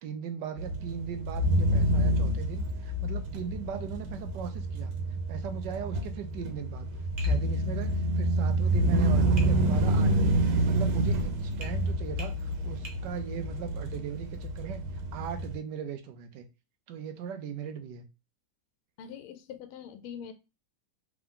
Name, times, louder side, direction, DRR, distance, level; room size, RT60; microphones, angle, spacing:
voice 1, 0.0-4.9 5.3-6.9 7.2-16.5 16.9-18.1, right 7 dB, 70° right, 7 dB, 1.1 m, -39 dB
sound 1, 0.6-15.6, right 1 dB, 90° right, 1.7 m, -28 dB
Tap, 7.2-7.4 9.4-9.5 11.6-11.8 12.2-12.4 12.8-13.0, right 1 dB, 50° right, 0.6 m, -43 dB
voice 2, 19.0-20.3, left 8 dB, 90° left, 9 dB, 1.4 m, -43 dB
3.6 x 3.4 x 3.6 m, 0.29 s
omnidirectional pair, 2.3 m